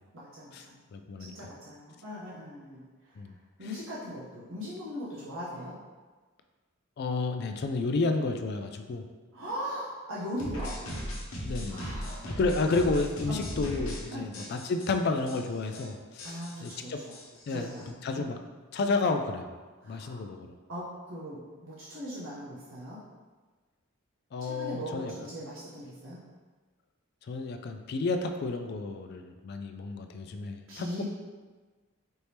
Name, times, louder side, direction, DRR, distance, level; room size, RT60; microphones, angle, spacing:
voice 1, 0.1-0.8 1.2-3.3 3.6-5.7 9.3-10.8 11.7-12.4 13.3-13.4 14.1-14.3 16.2-17.1 17.5-18.3 19.8-20.3 20.7-23.0 24.4-26.2 30.7-31.0, equal, 65° right, -7 dB, 0.7 m, -40 dB
voice 2, 0.9-1.3 3.2-3.3 7.0-9.0 11.4-11.9 12.3-17.0 17.5-17.7 18.0-18.4 18.7-19.5 19.8-20.5 24.3-25.1 27.3-31.0, left 3 dB, 50° left, 6 dB, 0.3 m, -31 dB
sound 1, 10.4-14.0 14.3-14.9 15.3-15.4 15.6-15.8 16.2-17.9, equal, 70° left, 0.9 m, -37 dB
4.4 x 2.8 x 3.3 m, 1.4 s
head